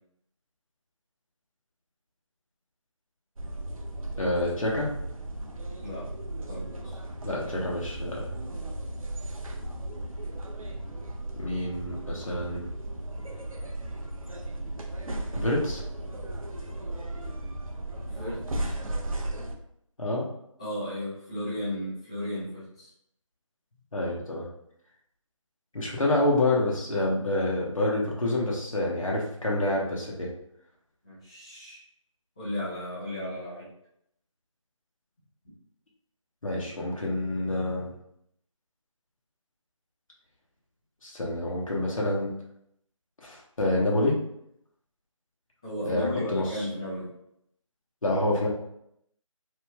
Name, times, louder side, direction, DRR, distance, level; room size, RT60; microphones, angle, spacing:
sound 1, 3.4-19.5, right 1 dB, 85° right, 0.5 m, -36 dB
voice 1, 4.2-4.9 7.2-8.3 11.4-12.6 15.3-15.8 20.0-20.2 23.9-24.4 25.7-30.3 36.4-37.9 41.0-42.3 43.2-44.1 45.8-46.6 48.0-48.5, left 1 dB, 80° left, -4 dB, 0.9 m, -27 dB
voice 2, 5.8-6.1 6.4-7.0 18.0-18.7 20.6-22.9 31.0-31.8 32.4-33.7 45.6-47.1, left 1 dB, 10° left, -10 dB, 0.5 m, -35 dB
3.1 x 2.6 x 2.3 m, 0.75 s
figure-of-eight pair, 160°, 17 cm